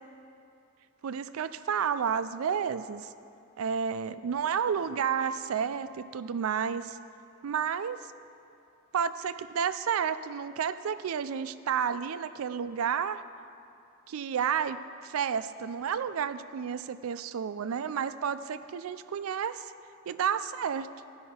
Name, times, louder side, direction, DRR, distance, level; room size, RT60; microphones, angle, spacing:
voice 1, 1.0-3.1 3.6-7.0 7.4-8.0 8.9-13.2 14.1-19.7 20.1-20.9, right 7 dB, 85° right, 12 dB, 0.4 m, -31 dB
15.5 x 5.6 x 4.3 m, 2.5 s
head